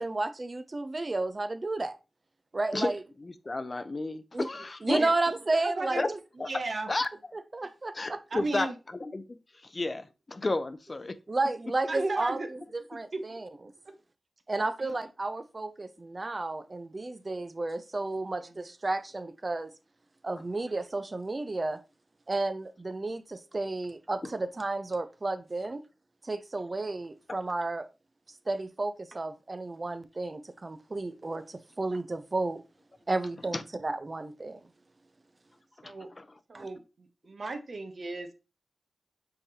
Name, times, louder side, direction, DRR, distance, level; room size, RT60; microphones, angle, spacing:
voice 1, 0.0-2.0 2.5-3.0 4.3-4.5 4.8-6.2 7.3-8.2 11.3-13.5 14.5-19.7 20.2-21.8 22.3-25.8 26.2-27.9 28.5-32.6 33.1-34.6 36.5-36.7, right 2 dB, 40° right, 0.5 m, -32 dB
voice 2, 3.2-5.0 6.0-6.1 6.4-6.5 6.9-7.1 7.9-8.7 8.9-9.4 9.6-11.2 33.5-33.6 35.8-36.3, left 2 dB, 40° left, 0.5 m, -32 dB
voice 3, 5.6-6.0 6.4-6.9 7.6-7.7 8.3-8.8 11.9-12.5 13.1-13.2 14.8-14.9 18.4-18.5 35.8-36.1 36.5-38.3, right 3 dB, 60° right, 0.8 m, -35 dB
5.6 x 3.3 x 2.8 m
cardioid pair, 50°, 0 cm